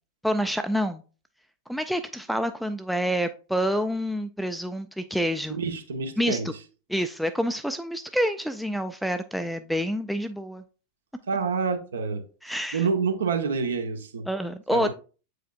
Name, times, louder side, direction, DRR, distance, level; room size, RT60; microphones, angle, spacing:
voice 1, 0.2-1.0 1.7-5.6 6.2-6.4 6.9-10.6 12.4-12.9 14.3-14.9, equal, ahead, 0.4 m, -27 dB
voice 2, 5.5-6.5 11.3-12.2 12.7-14.3 14.7-14.9, right 5 dB, 65° right, 1.1 m, -27 dB
8.0 x 4.9 x 2.4 m
figure-of-eight pair, 90°, 0 cm